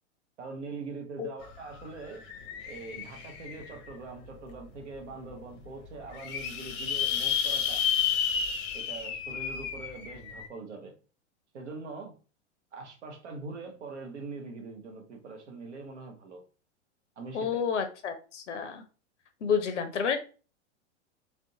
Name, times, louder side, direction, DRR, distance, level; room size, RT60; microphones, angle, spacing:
voice 1, 0.4-2.3 2.7-7.8 8.7-11.0 11.5-12.1 12.7-16.4 17.2-17.6, right 3 dB, 75° right, 3 dB, 0.8 m, -42 dB
sound 1, 1.4-1.5 1.8-3.9 4.5-4.6 5.0-5.1 5.2-5.3 5.9-10.5, left 8 dB, 35° left, 0.6 m, -31 dB
voice 2, 17.3-18.8 19.4-20.2, left 6 dB, 85° left, 8 dB, 0.5 m, -30 dB
2.5 x 2.2 x 2.6 m, 0.35 s
figure-of-eight pair, 95°, 35 cm